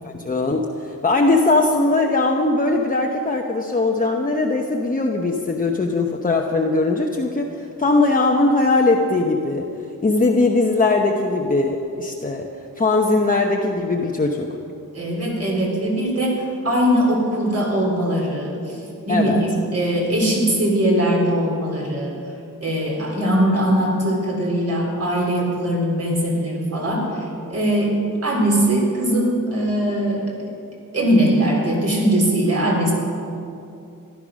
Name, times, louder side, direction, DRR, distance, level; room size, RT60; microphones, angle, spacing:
voice 1, 0.0-9.7 10.0-12.5 12.8-14.6 19.1-19.4, left 2 dB, 25° left, 0 dB, 0.9 m, -20 dB
voice 2, 14.9-22.1 22.6-30.5 30.9-32.9, right 1 dB, 45° right, -1 dB, 3.9 m, -21 dB
14.5 x 12.0 x 6.3 m, 2.6 s
wide cardioid pair, 120°, 33 cm